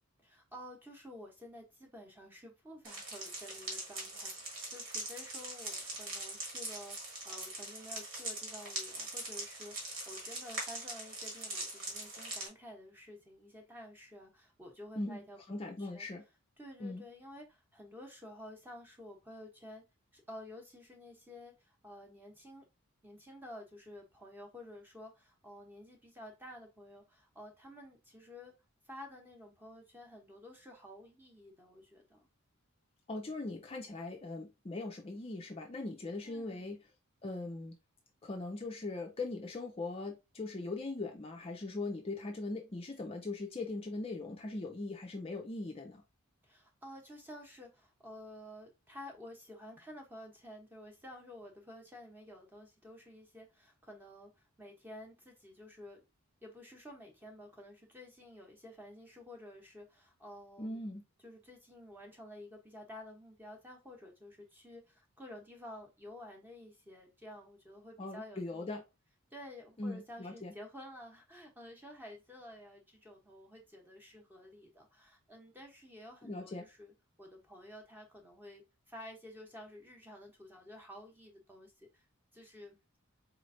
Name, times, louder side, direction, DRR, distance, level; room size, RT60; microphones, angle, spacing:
voice 1, 0.2-16.1 16.6-19.8 20.1-22.6 23.0-28.5 28.9-32.3 36.2-36.7 46.4-56.0 56.4-60.8 61.2-68.8 69.3-76.9 77.2-82.0 82.3-82.8, left 1 dB, 10° right, 0.9 m, -51 dB
sound 1, 2.8-12.5, right 2 dB, 60° right, 1.6 m, -42 dB
voice 2, 15.5-16.2 16.8-17.0 33.1-36.8 37.2-37.8 38.2-46.0 60.6-61.0 68.0-68.8 69.8-70.5 76.2-76.6, left 2 dB, 25° left, 0.4 m, -40 dB
4.2 x 3.1 x 2.6 m
head